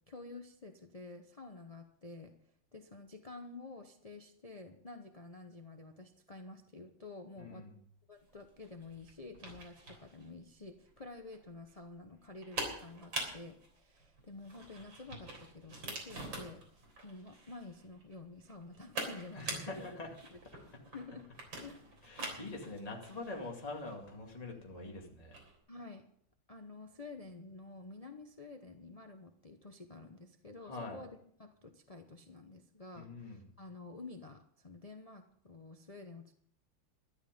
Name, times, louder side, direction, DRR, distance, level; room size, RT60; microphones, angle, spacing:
voice 1, 0.1-7.7 8.1-19.9 20.3-20.4 20.9-21.3 21.6-21.9 25.7-26.1 26.5-36.3, left 3 dB, 70° left, 5 dB, 0.3 m, -50 dB
voice 2, 7.4-7.8 19.3-20.2 20.7-20.8 22.0-25.4 30.6-31.0 32.9-33.5, left 2 dB, 20° left, 0 dB, 2.3 m, -44 dB
sound 1, 8.2-25.6, right 2 dB, 60° right, 4.3 m, -46 dB
13.0 x 11.5 x 5.3 m, 0.64 s
omnidirectional pair, 2.3 m